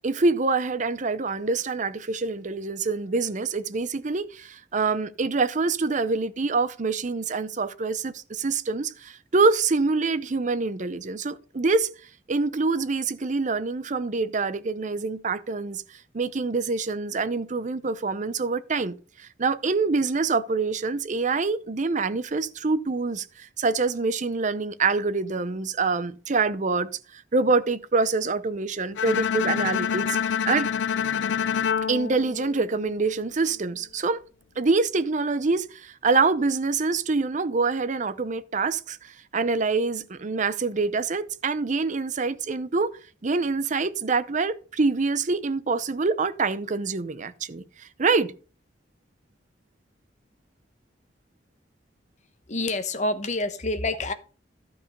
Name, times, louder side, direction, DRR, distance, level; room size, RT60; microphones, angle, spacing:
voice 1, 0.0-11.9 12.3-15.8 16.1-30.7 31.9-34.2 34.6-39.0 39.3-42.9 43.2-48.3, right 4 dB, 45° right, 0.7 m, -25 dB
Bowed string instrument, 29.0-33.1, left 7 dB, 90° left, 0.4 m, -27 dB
voice 2, 52.5-54.1, left 2 dB, 40° left, 1.1 m, -27 dB
12.5 x 5.5 x 5.3 m
head